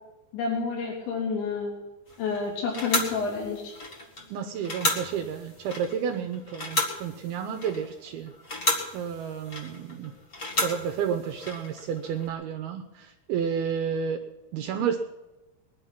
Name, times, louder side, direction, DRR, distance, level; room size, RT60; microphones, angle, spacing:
voice 1, 0.3-1.8 2.2-3.8, left 4 dB, 85° left, -2 dB, 5.5 m, -29 dB
sound 1, 2.1-12.3, left 2 dB, 60° left, 0.8 m, -33 dB
voice 2, 4.3-8.3 8.9-10.1 10.4-14.2 14.5-15.1, right 7 dB, 75° right, 6 dB, 2.4 m, -31 dB
20.5 x 11.0 x 5.8 m, 1.1 s
omnidirectional pair, 5.0 m